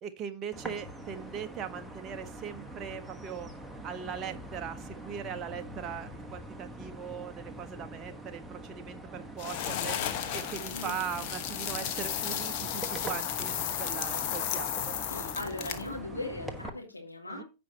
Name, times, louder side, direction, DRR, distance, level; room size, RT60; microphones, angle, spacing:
voice 1, 0.0-3.5 3.8-10.0 10.3-14.9 17.3-17.4, right 8 dB, 25° right, 7 dB, 0.8 m, -40 dB
sound 1, 0.5-16.7, right 1 dB, ahead, 1.2 m, -44 dB
sound 2, 9.4-16.0, left 10 dB, 40° left, 1.2 m, -34 dB
voice 2, 15.1-17.4, left 2 dB, 80° left, 1 dB, 2.6 m, -39 dB
15.5 x 5.2 x 2.8 m, 0.27 s
figure-of-eight pair, 95°, 0 cm